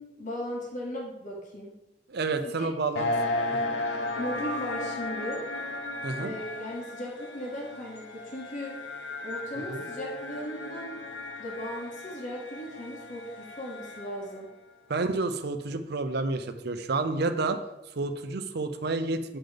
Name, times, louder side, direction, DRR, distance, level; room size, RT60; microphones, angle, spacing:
voice 1, 0.0-1.8 2.4-2.8 4.2-5.4 6.2-8.8 9.2-11.0 11.4-14.5, equal, 45° left, -3 dB, 1.7 m, -37 dB
voice 2, 2.1-3.1 3.5-3.6 6.0-6.3 9.7-9.8 14.9-17.6 17.9-19.4, right 3 dB, 60° right, 8 dB, 0.6 m, -30 dB
sound 1, 2.9-14.4, left 2 dB, 70° left, 0.9 m, -35 dB
8.9 x 3.9 x 5.2 m, 0.94 s
head